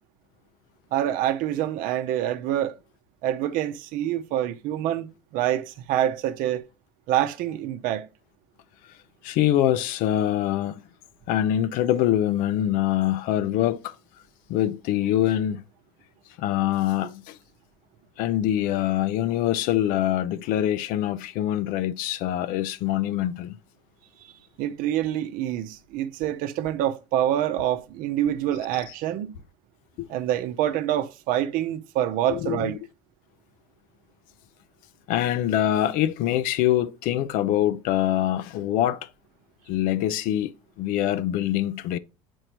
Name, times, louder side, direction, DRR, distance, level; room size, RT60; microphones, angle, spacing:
voice 1, 0.9-2.8 3.2-6.6 7.1-8.1 24.6-29.3 30.1-32.8, right 12 dB, 65° right, 0.7 m, -26 dB
voice 2, 9.2-10.9 11.3-14.0 14.5-15.6 16.4-17.4 18.2-23.5 30.0-30.1 32.3-32.8 35.1-39.1 39.7-40.5 40.8-42.0, left 12 dB, 65° left, 0.6 m, -24 dB
7.7 x 4.5 x 3.0 m
hypercardioid pair, 85°, 16 cm